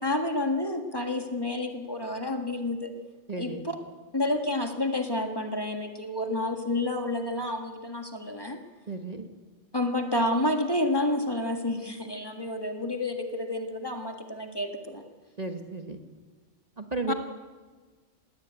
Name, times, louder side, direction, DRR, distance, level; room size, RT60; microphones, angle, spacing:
voice 1, 0.0-2.9 3.4-3.7 4.1-8.6 9.7-15.0 17.1-17.2, left 1 dB, 20° left, 4 dB, 1.7 m, -29 dB
voice 2, 3.3-3.6 8.9-9.3 15.4-16.0 16.8-17.1, right 3 dB, 35° right, 5 dB, 1.4 m, -34 dB
19.5 x 17.0 x 9.0 m, 1.4 s
omnidirectional pair, 1.2 m